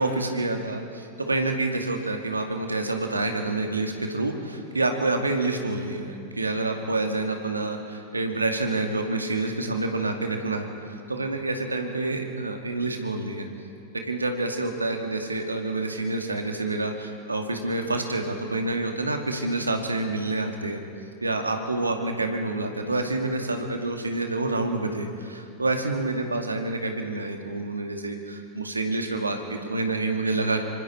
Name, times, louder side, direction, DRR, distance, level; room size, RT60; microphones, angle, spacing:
voice 1, 0.0-13.5 14.0-20.8 21.2-30.6, right 2 dB, 80° right, 4 dB, 2.1 m, -28 dB
26.0 x 25.0 x 4.4 m, 2.4 s
figure-of-eight pair, 90°, 0 cm